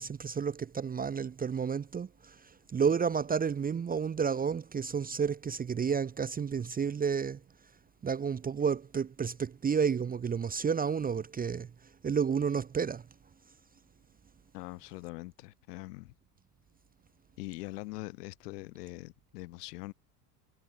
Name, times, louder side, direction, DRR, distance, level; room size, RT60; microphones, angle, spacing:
voice 1, 0.0-7.4 8.0-11.7 12.0-13.0, right 6 dB, 20° right, 0.9 m, -31 dB
voice 2, 14.5-16.1 17.4-19.9, left 21 dB, 70° left, 5.4 m, -43 dB
hypercardioid pair, 95°, 49 cm